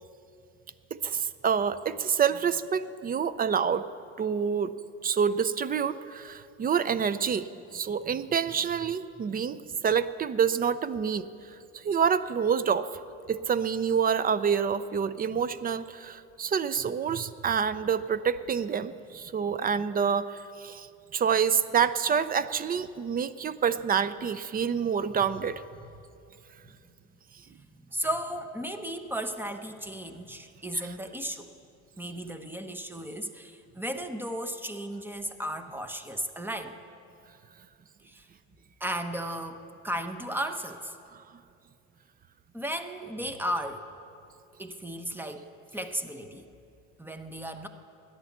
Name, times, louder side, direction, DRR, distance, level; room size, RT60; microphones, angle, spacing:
voice 1, 0.9-3.9 4.2-4.7 5.0-7.5 7.7-11.3 11.7-12.9 13.3-20.9 21.1-25.6 30.7-30.8, right 7 dB, 25° right, 15 dB, 0.4 m, -27 dB
voice 2, 27.5-31.5 32.0-36.7 38.0-38.3 38.8-40.9 42.5-43.9 44.6-45.4 45.7-46.5 47.0-47.7, equal, 5° right, 7 dB, 0.9 m, -35 dB
13.5 x 10.0 x 7.2 m, 2.6 s
supercardioid pair, 100°, 35 cm